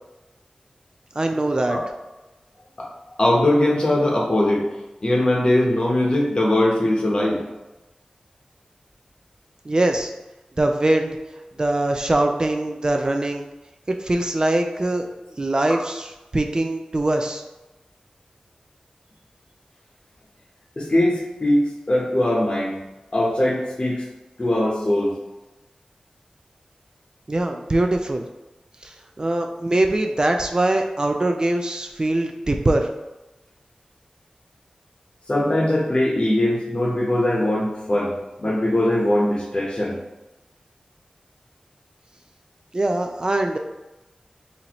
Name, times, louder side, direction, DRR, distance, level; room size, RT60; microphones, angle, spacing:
voice 1, 1.2-1.8 9.7-10.1 10.6-11.1 11.6-13.4 14.0-15.0 15.4-17.4 27.3-28.3 28.8-32.9 42.7-43.6, right 1 dB, 35° right, 4 dB, 0.3 m, -22 dB
voice 2, 3.2-4.7 5.0-7.4 15.7-15.8 20.8-21.6 21.9-22.8 23.1-24.0 24.4-25.2 35.3-40.0, left 1 dB, 40° left, -2 dB, 0.9 m, -21 dB
4.2 x 2.7 x 3.0 m, 1.0 s
wide cardioid pair, 70°, 2 cm